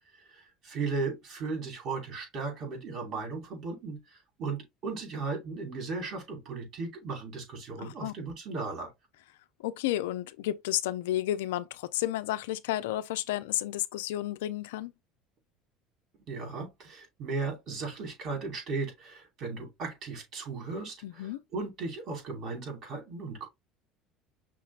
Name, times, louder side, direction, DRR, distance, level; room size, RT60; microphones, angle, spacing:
voice 1, 0.1-8.9 16.3-23.5, right 4 dB, 55° right, 2.8 m, -36 dB
voice 2, 7.8-8.1 9.6-14.9 21.0-21.4, left 14 dB, 85° left, 0.4 m, -32 dB
5.8 x 3.1 x 2.4 m
supercardioid pair, 90°, 0 cm